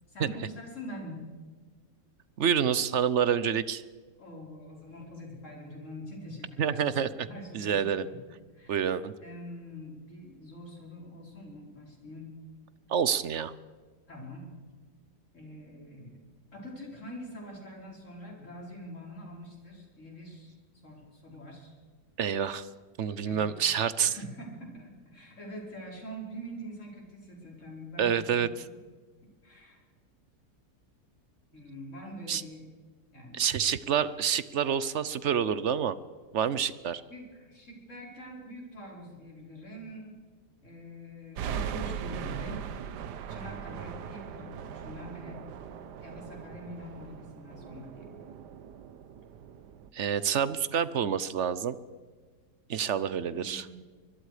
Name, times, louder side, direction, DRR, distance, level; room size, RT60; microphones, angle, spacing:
voice 1, 0.1-1.2 4.2-6.8 7.2-8.2 8.5-8.9 9.2-12.3 14.1-14.5 15.3-16.2 16.5-20.5 20.8-21.7 23.3-23.5 24.0-28.6 29.4-29.8 31.5-32.6 33.1-33.4 36.8-40.2 40.6-42.7 43.3-45.4 46.0-48.2 53.3-53.8, equal, 45° left, -1 dB, 5.2 m, -44 dB
voice 2, 2.4-3.8 6.6-7.3 7.5-8.1 8.7-9.1 12.9-13.5 22.2-22.7 23.0-24.2 28.0-28.5 32.3-32.4 33.3-36.0 36.3-37.0 49.9-51.8 52.7-53.7, right 8 dB, 55° right, 16 dB, 0.9 m, -28 dB
sound 1, 41.4-49.9, right 8 dB, 85° right, 1.5 m, -40 dB
24.5 x 21.5 x 5.0 m, 1.5 s
omnidirectional pair, 1.7 m